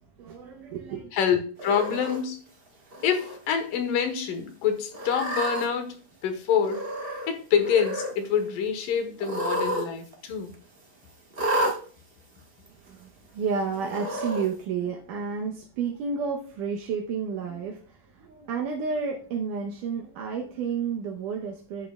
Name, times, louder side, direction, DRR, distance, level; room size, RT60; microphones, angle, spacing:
voice 1, 0.2-1.1 12.8-21.9, right 5 dB, 75° right, 1 dB, 2.4 m, -31 dB
voice 2, 1.1-2.4 3.0-6.8 7.3-10.5, left 7 dB, 85° left, 6 dB, 2.9 m, -26 dB
Cat, 1.6-2.2 2.9-3.4 3.7-3.8 4.9-5.6 6.6-7.3 7.6-8.1 9.2-9.8 10.1-10.2 11.3-11.7 12.7-12.8 13.9-14.5, right 1 dB, 55° right, 0.6 m, -30 dB
11.0 x 8.2 x 2.3 m, 0.42 s
omnidirectional pair, 3.8 m